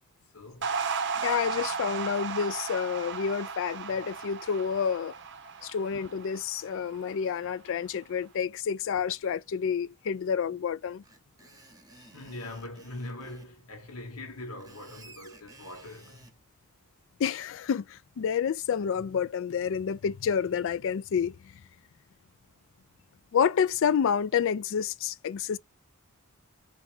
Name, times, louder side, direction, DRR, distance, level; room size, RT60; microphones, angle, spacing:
voice 1, 0.3-0.8 11.4-11.8 12.1-16.3 19.0-19.1, left 2 dB, 90° left, 1.5 m, -42 dB
sound 1, 0.6-7.1, right 5 dB, 55° right, 0.6 m, -35 dB
voice 2, 1.2-5.1 5.6-11.0 17.2-21.3 23.3-25.6, left 7 dB, 60° left, 0.3 m, -29 dB
Screech, 11.0-13.5 14.4-16.3, right 2 dB, 15° right, 0.9 m, -54 dB
3.6 x 2.9 x 3.3 m
head